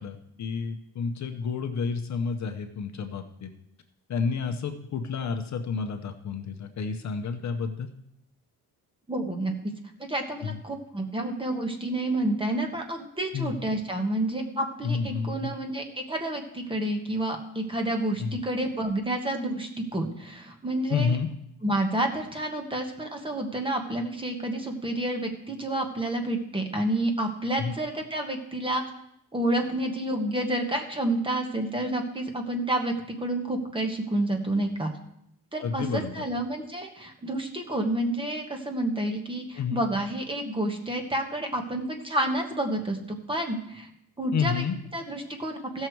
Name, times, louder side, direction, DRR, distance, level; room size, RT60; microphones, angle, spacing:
voice 1, 0.0-3.5 4.1-7.9 10.4-10.6 13.3-13.5 14.8-15.5 18.2-18.4 20.9-21.3 27.6-27.7 35.6-36.2 39.6-39.9 44.3-44.8, left 5 dB, 45° left, 7 dB, 0.8 m, -30 dB
voice 2, 9.1-9.5 10.0-21.2 21.6-28.8 29.3-34.9 35.5-43.9 44.2-44.6 44.9-45.9, right 1 dB, 15° right, 3 dB, 1.2 m, -29 dB
16.0 x 6.5 x 4.6 m, 0.76 s
cardioid pair, 160°, 38 cm